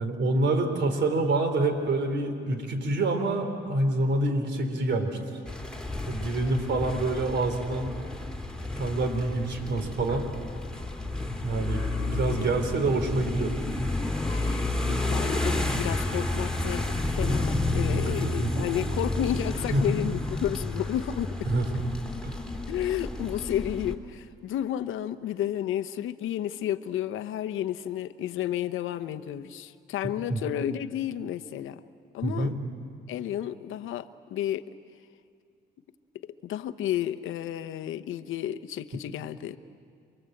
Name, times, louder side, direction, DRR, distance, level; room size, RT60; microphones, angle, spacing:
voice 1, 0.0-5.2 6.1-8.0 8.8-10.3 11.4-11.8 12.1-13.5 17.9-18.0 18.4-18.7 19.7-20.0 21.5-21.8 22.2-22.4 30.3-30.4 32.2-32.5, right 2 dB, 65° right, 6 dB, 3.4 m, -26 dB
sound 1, 5.5-24.0, left 2 dB, 5° left, 2.4 m, -31 dB
voice 2, 14.3-21.5 22.7-31.8 32.1-32.5 33.1-34.6 36.2-39.6, left 11 dB, 85° left, 10 dB, 1.0 m, -32 dB
28.0 x 22.5 x 7.9 m, 2.2 s
cardioid pair, 90°, 20 cm